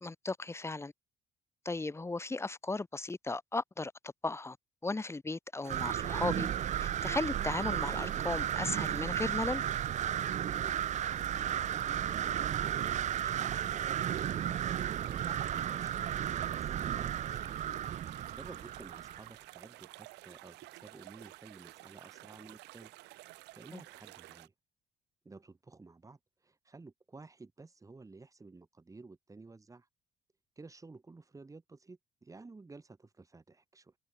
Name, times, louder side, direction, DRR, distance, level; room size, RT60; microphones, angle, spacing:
voice 1, 0.0-0.9 1.6-4.6 4.8-6.5 6.8-9.6 23.7-23.8, left 3 dB, 15° left, 2.3 m, -36 dB
sound 1, 5.6-24.5, right 20 dB, 90° right, 3.6 m, -52 dB
sound 2, 5.7-19.3, right 10 dB, 45° right, 0.6 m, -34 dB
voice 2, 10.3-13.6 13.9-14.8 15.0-17.6 18.3-22.9 23.5-24.5 25.2-29.9 30.6-34.0, right 3 dB, 20° right, 7.8 m, -54 dB
cardioid pair, 110°, 17 cm